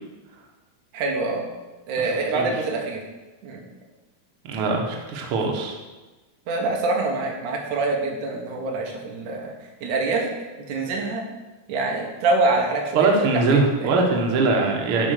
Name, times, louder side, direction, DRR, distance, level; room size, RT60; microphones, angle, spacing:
voice 1, 0.9-1.4 1.9-3.0 3.4-3.6 6.5-9.5 9.8-10.3 10.7-11.2 11.7-13.9, right 3 dB, 65° right, 1 dB, 2.3 m, -25 dB
voice 2, 4.5-5.7 12.9-15.1, right 3 dB, 85° right, 1 dB, 1.2 m, -21 dB
11.0 x 4.5 x 6.5 m, 1.2 s
omnidirectional pair, 4.5 m